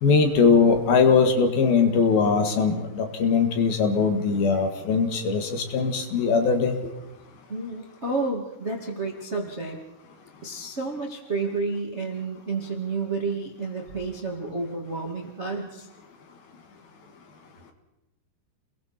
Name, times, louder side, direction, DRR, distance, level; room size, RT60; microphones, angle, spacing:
voice 1, 0.0-6.7, left 5 dB, 60° left, 5 dB, 3.1 m, -21 dB
voice 2, 7.5-9.8 10.4-15.9, right 3 dB, 85° right, 0 dB, 0.6 m, -30 dB
30.0 x 21.0 x 4.4 m, 1.0 s
omnidirectional pair, 5.7 m